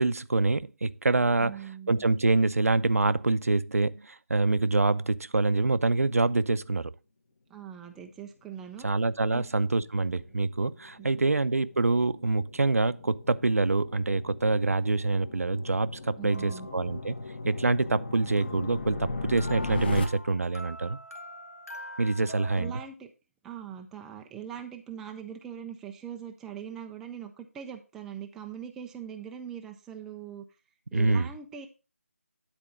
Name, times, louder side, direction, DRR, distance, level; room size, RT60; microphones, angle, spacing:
voice 1, 0.0-1.6 1.9-6.9 8.8-17.1 17.5-21.0 22.0-22.8 30.9-31.3, right 3 dB, 75° right, 0.6 m, -26 dB
voice 2, 1.4-2.0 7.5-8.9 9.3-9.5 11.0-11.3 16.2-16.7 22.6-23.1 23.4-30.4 30.9-31.7, right 8 dB, 5° right, 0.4 m, -41 dB
sound 1, 9.5-20.1, left 3 dB, 40° left, 1.3 m, -38 dB
sound 2, 16.3-17.2 18.4-22.9, equal, 85° left, 2.0 m, -45 dB
10.0 x 4.4 x 5.0 m
figure-of-eight pair, 160°, 8 cm